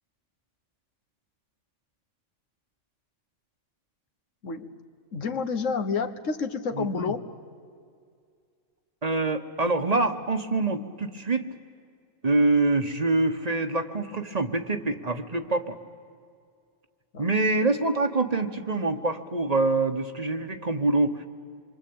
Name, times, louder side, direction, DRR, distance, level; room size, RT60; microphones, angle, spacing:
voice 1, 4.4-4.7 5.1-7.3 17.1-17.3, left 5 dB, 90° left, 7 dB, 1.7 m, -29 dB
voice 2, 6.8-7.1 9.0-11.5 12.2-15.8 17.2-21.3, right 2 dB, 35° right, 8 dB, 1.2 m, -25 dB
26.5 x 23.5 x 8.7 m, 2.2 s
omnidirectional pair, 1.3 m